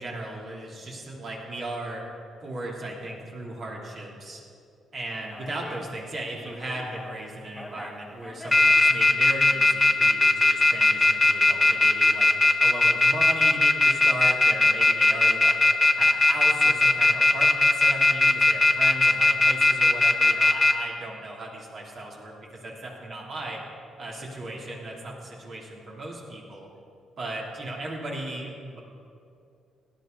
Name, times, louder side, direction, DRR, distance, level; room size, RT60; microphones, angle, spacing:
voice 1, 0.0-2.0 2.4-4.4 4.9-12.3 12.6-15.6 16.0-23.6 24.0-26.7 27.2-28.8, right 1 dB, 50° right, -3 dB, 3.3 m, -36 dB
sound 1, 5.4-5.8 6.5-7.1 7.6-7.9 8.2-20.7, left 2 dB, 15° left, 1.1 m, -19 dB
17.5 x 11.0 x 4.1 m, 2.5 s
cardioid pair, 90°, 0 cm